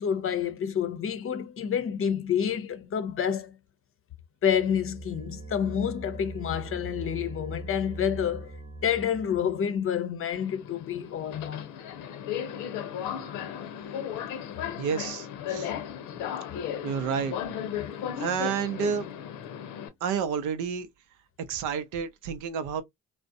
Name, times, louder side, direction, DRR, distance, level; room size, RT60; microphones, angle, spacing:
voice 1, 0.0-3.6 4.4-8.6 8.8-11.7, left 8 dB, 45° left, 0.6 m, -28 dB
sound 1, 4.4-9.6, right 2 dB, 20° right, 0.8 m, -41 dB
Subway metro underground, 10.3-19.9, left 9 dB, 80° left, 0.7 m, -35 dB
voice 2, 14.8-15.7 16.8-17.3 18.2-19.1 20.0-20.9 21.5-22.8, right 7 dB, 75° right, 0.6 m, -30 dB
2.4 x 2.1 x 2.5 m
supercardioid pair, 65°, 31 cm